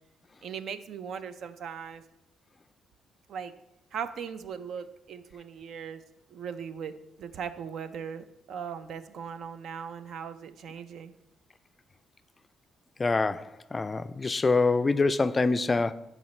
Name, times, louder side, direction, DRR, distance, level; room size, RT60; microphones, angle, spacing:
voice 1, 0.4-2.0 3.3-3.5 3.9-6.0 6.3-6.9 7.2-11.1, right 7 dB, 70° right, 0.5 m, -38 dB
voice 2, 13.0-15.9, left 3 dB, 25° left, 0.3 m, -25 dB
11.0 x 5.0 x 3.2 m
cardioid pair, 90°, 0 cm